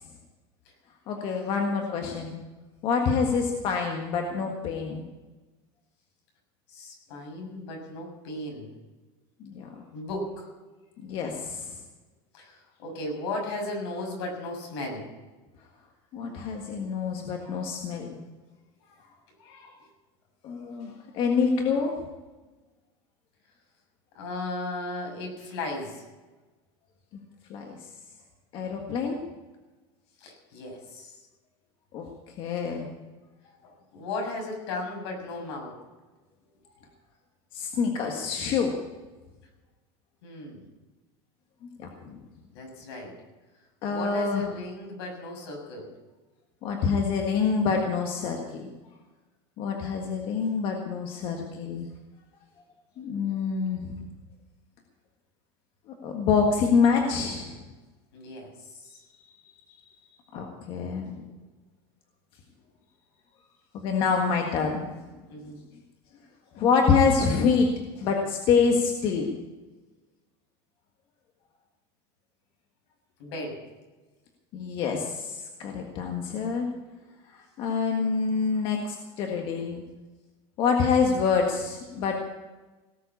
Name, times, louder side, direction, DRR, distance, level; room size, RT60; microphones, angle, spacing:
voice 1, 1.1-2.4 2.8-5.1 9.4-9.7 11.0-11.7 16.1-18.2 19.4-19.7 20.4-22.0 27.5-27.7 28.5-29.2 31.9-32.1 32.4-32.9 37.5-38.7 41.8-42.2 43.8-44.5 46.6-48.6 49.6-51.9 53.0-54.0 56.0-57.6 60.3-61.2 63.7-65.0 65.5-65.6 66.5-67.7 68.0-69.4 74.5-76.7 77.3-79.8 80.6-82.1, left 5 dB, 40° left, 2 dB, 1.6 m, -26 dB
voice 2, 6.7-8.7 9.9-10.5 12.3-15.1 24.1-26.0 30.2-31.1 33.9-35.8 40.2-40.6 42.5-43.1 43.9-45.9 58.1-59.0 65.3-65.6 73.2-73.6, left 2 dB, 75° left, 1 dB, 6.7 m, -36 dB
18.0 x 7.8 x 8.4 m, 1.2 s
supercardioid pair, 165°, 14 cm